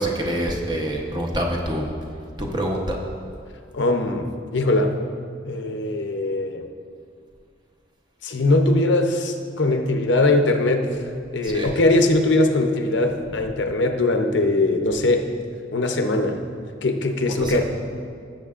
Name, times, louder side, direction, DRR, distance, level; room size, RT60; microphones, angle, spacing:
voice 1, 0.0-1.9 2.4-3.0 11.4-11.7 17.3-17.6, right 1 dB, 20° right, 0 dB, 0.9 m, -26 dB
voice 2, 3.7-4.9 5.5-6.6 8.2-15.3 15.7-16.4 16.8-17.6, left 2 dB, 70° left, 4 dB, 0.7 m, -21 dB
16.5 x 7.5 x 2.5 m, 2.3 s
head